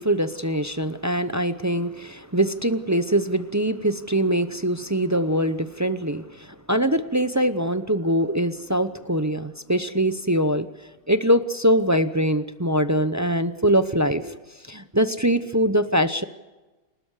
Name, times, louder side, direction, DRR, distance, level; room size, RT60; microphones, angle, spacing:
voice 1, 0.0-10.7 11.1-14.4 14.7-16.2, right 1 dB, 20° right, 11 dB, 0.5 m, -23 dB
28.5 x 13.0 x 8.2 m, 1.2 s
omnidirectional pair, 1.6 m